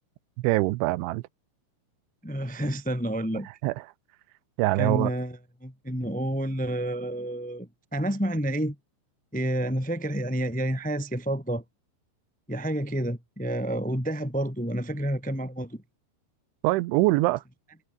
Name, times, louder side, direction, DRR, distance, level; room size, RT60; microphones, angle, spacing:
voice 1, 0.4-1.2 3.6-3.8 4.6-5.1 16.6-17.4, right 20 dB, 85° right, 3.1 m, -23 dB
voice 2, 2.2-3.5 4.8-8.7 9.3-11.6 12.5-15.8, right 1 dB, 5° left, 0.9 m, -29 dB
omnidirectional pair, 5.5 m